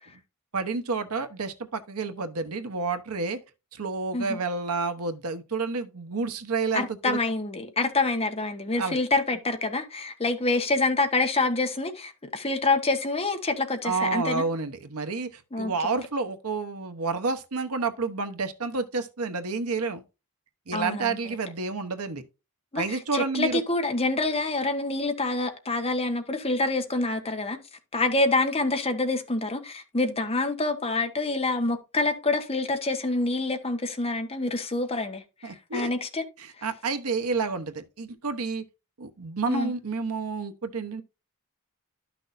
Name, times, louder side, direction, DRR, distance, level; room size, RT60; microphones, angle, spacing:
voice 1, 0.5-3.4 3.7-7.2 8.8-9.0 13.8-20.0 20.7-22.2 22.7-23.6 35.4-35.9 36.4-38.6 39.0-41.0, right 4 dB, 75° right, 1.0 m, -30 dB
voice 2, 6.7-14.4 15.5-15.9 20.7-21.2 22.7-27.6 27.9-36.2 39.5-39.7, left 2 dB, 25° left, 1.2 m, -27 dB
12.0 x 6.1 x 2.6 m
head